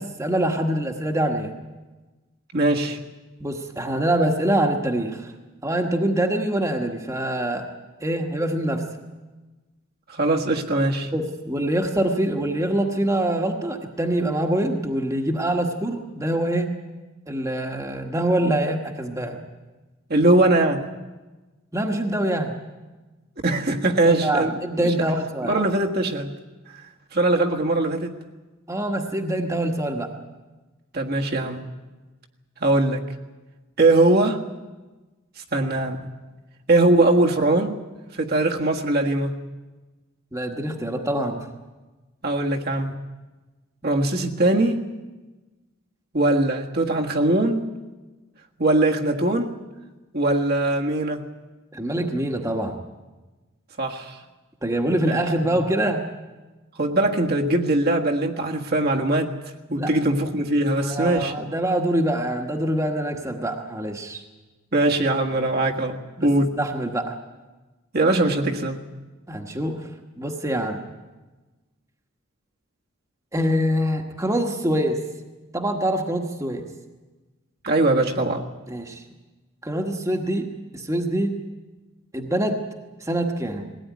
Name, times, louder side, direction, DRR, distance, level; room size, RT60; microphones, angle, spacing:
voice 1, 0.0-1.5 3.4-5.3 5.6-7.7 8.0-8.8 11.1-16.7 17.3-19.4 21.7-22.5 24.0-25.6 28.7-30.1 40.3-41.5 51.7-52.7 54.6-56.0 59.8-59.9 60.8-64.2 66.2-66.3 66.6-67.2 69.3-69.8 70.2-70.8 73.3-75.0 75.5-76.6 78.7-79.0 79.6-80.5 80.7-81.4 82.1-82.6 83.0-83.7, right 1 dB, 15° right, 3 dB, 1.5 m, -24 dB
voice 2, 2.5-3.0 10.1-11.1 20.1-20.9 23.4-24.9 25.4-26.3 27.1-28.1 30.9-31.6 32.6-33.0 33.8-34.4 35.5-36.0 36.7-37.7 38.1-39.3 42.2-42.9 43.8-44.8 46.1-47.7 48.6-49.6 50.1-51.2 53.8-54.2 55.1-55.6 56.8-59.3 59.7-61.3 64.7-66.5 67.9-68.8 77.6-78.5, right 2 dB, 45° right, 1 dB, 1.6 m, -21 dB
20.5 x 17.5 x 9.5 m, 1.2 s
head